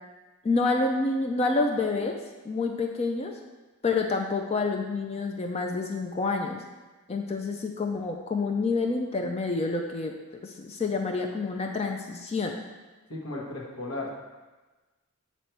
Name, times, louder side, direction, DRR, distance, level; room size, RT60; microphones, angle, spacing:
voice 1, 0.4-2.2 2.4-3.3 3.8-6.6 7.1-10.1 10.4-12.5, left 3 dB, 30° left, 3 dB, 0.3 m, -28 dB
voice 2, 13.1-14.1, left 2 dB, 70° left, -3 dB, 1.3 m, -35 dB
8.0 x 3.1 x 4.4 m, 1.2 s
head